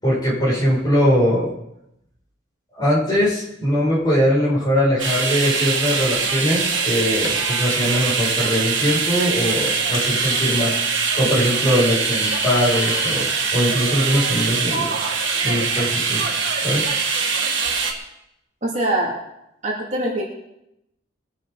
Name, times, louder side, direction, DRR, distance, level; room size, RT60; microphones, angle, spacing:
voice 1, 0.0-1.5 2.7-10.7 11.1-13.3 13.5-15.1 15.4-16.3 16.6-16.9, equal, 20° left, -7 dB, 7.1 m, -21 dB
sound 1, 5.0-17.9, right 5 dB, 75° right, 2.2 m, -22 dB
Car, 6.7-16.2, left 7 dB, 80° left, 2.0 m, -38 dB
voice 2, 18.6-19.2 19.6-20.2, right 1 dB, 40° right, -3 dB, 2.9 m, -23 dB
23.0 x 9.4 x 4.2 m, 0.84 s
head